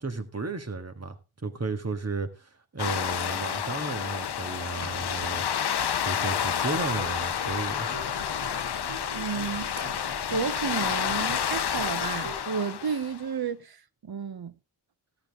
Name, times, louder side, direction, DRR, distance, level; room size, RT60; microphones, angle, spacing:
voice 1, 0.0-5.5 6.0-7.9, right 3 dB, 30° right, 1.7 m, -34 dB
sound 1, 2.8-13.3, left 8 dB, 55° left, 0.7 m, -30 dB
sound 2, 6.6-12.4, right 2 dB, 85° right, 7.5 m, -42 dB
voice 2, 9.1-14.5, right 6 dB, 50° right, 0.9 m, -32 dB
14.0 x 10.5 x 3.6 m
cardioid pair, 50°, 50 cm